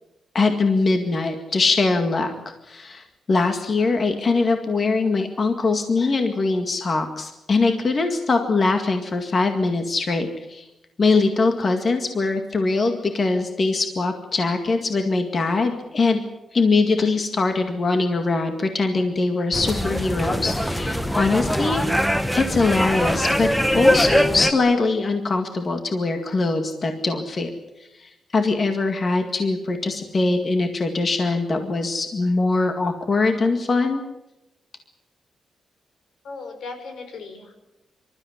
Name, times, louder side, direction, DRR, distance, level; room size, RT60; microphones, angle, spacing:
voice 1, 0.3-2.3 2.7-10.7 11.0-16.2 16.5-21.8 22.3-27.5 28.0-34.0, left 3 dB, 35° left, 6 dB, 2.0 m, -22 dB
sound 1, 19.5-24.5, equal, 5° left, 1.0 m, -22 dB
voice 2, 36.2-37.7, left 4 dB, 85° left, 6 dB, 4.9 m, -37 dB
26.5 x 13.5 x 9.9 m, 0.95 s
wide cardioid pair, 165°, 0 cm